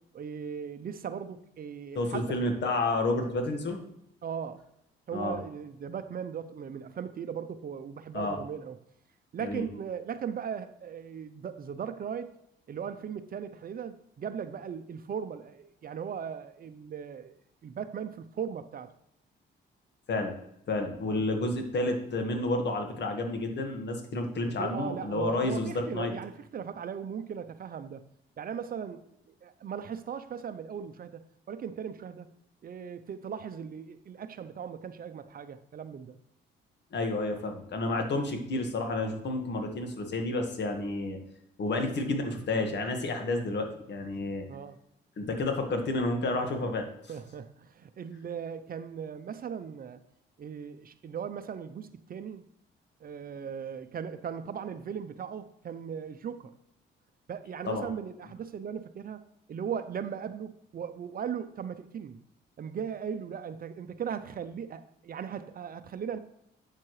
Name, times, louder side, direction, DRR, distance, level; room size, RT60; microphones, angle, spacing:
voice 1, 0.0-2.4 4.2-4.6 5.1-8.8 9.3-12.4 12.7-17.3 17.6-18.9 21.1-21.2 24.6-28.0 28.4-32.3 32.6-36.1 41.8-41.9 44.5-44.8 47.1-50.0 50.4-52.4 53.0-56.6 57.3-59.2 59.5-62.2 62.6-66.2, right 7 dB, 45° right, 11 dB, 0.6 m, -38 dB
voice 2, 1.9-3.8 5.1-5.4 8.1-8.4 9.4-9.6 20.1-20.3 20.7-26.1 36.9-41.2 41.6-44.4 45.2-46.9 57.7-57.9, left 2 dB, 60° left, 4 dB, 1.7 m, -30 dB
8.5 x 7.4 x 3.2 m, 0.78 s
cardioid pair, 90°, 20 cm